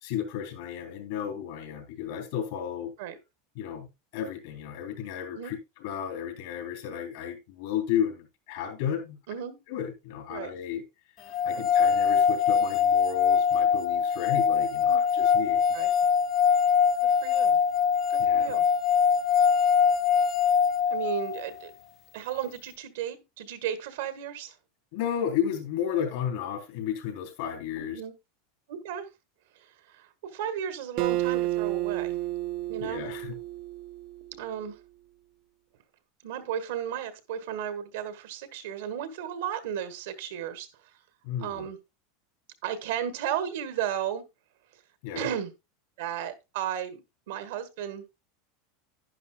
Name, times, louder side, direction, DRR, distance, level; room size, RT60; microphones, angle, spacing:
voice 1, 0.0-2.9 3.6-5.6 5.8-9.2 9.7-10.8 11.4-15.6 18.2-18.5 24.9-28.0 32.8-33.3 41.2-41.7 45.0-45.3, left 9 dB, 70° left, 3.8 m, -33 dB
sound 1, 11.3-21.5, left 7 dB, 40° left, 0.5 m, -23 dB
voice 2, 17.0-17.6 18.1-18.6 20.9-21.7 22.1-24.6 27.9-28.1 28.7-29.1 29.5-32.2 32.7-33.0 34.3-34.8 36.2-40.7 41.4-41.8 42.6-44.2 44.7-44.8 45.1-45.5 46.0-47.0 47.3-48.0, right 9 dB, 75° right, 1.6 m, -34 dB
Acoustic guitar, 31.0-34.4, right 16 dB, 55° right, 0.6 m, -31 dB
11.0 x 10.5 x 2.3 m
supercardioid pair, 125°, 0 cm